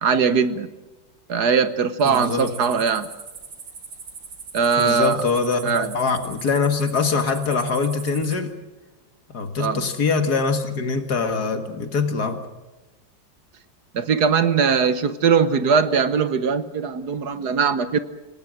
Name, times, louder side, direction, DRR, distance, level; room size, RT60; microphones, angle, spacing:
voice 1, 0.0-0.7 1.3-3.1 4.5-5.2 5.6-6.0 9.6-9.8 13.9-18.0, right 6 dB, 60° right, 12 dB, 1.5 m, -20 dB
voice 2, 2.0-2.5 4.8-8.5 9.3-12.4, left 4 dB, 60° left, 7 dB, 2.4 m, -23 dB
sound 1, 2.0-8.4, right 5 dB, 75° right, 3.1 m, -40 dB
27.5 x 18.5 x 7.7 m, 1.1 s
omnidirectional pair, 2.0 m